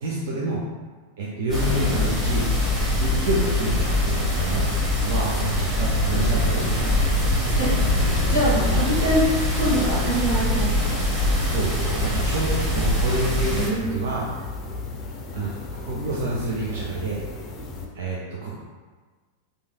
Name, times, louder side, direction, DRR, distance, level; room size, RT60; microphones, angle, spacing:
voice 1, 0.0-0.6 1.2-2.5 3.0-4.7 5.0-6.9 11.4-14.3 15.3-17.2 17.9-18.6, right 2 dB, 55° right, -5 dB, 0.4 m, -28 dB
sound 1, 1.5-17.9, left 2 dB, 30° left, 0.4 m, -35 dB
sound 2, 1.5-13.7, left 1 dB, 10° right, 0.9 m, -23 dB
voice 2, 8.2-9.2 9.5-11.2 13.4-13.9, right 1 dB, 90° right, -10 dB, 1.2 m, -25 dB
3.1 x 2.6 x 2.2 m, 1.4 s
figure-of-eight pair, 90°, 0 cm